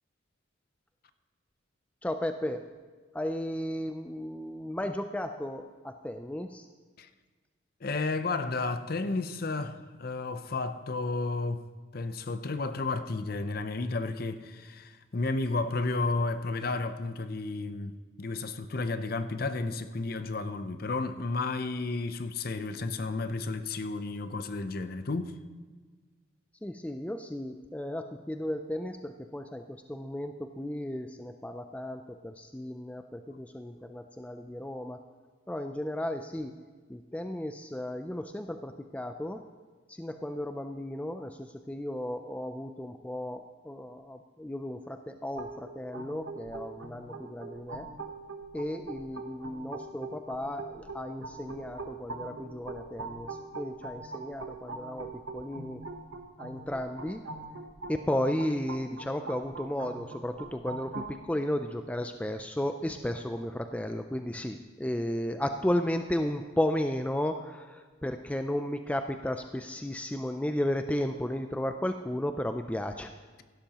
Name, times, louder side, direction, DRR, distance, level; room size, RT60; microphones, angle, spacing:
voice 1, 2.0-2.7 3.1-6.7 26.6-35.0 35.5-36.5 36.9-39.4 39.9-47.9 48.5-55.8 56.4-57.2 57.9-73.1, left 1 dB, 5° left, 0.3 m, -34 dB
voice 2, 7.8-11.6 11.9-25.3, left 3 dB, 50° left, 0.6 m, -32 dB
sound 1, 45.4-61.1, right 3 dB, 85° right, 1.0 m, -42 dB
16.0 x 11.5 x 2.9 m
head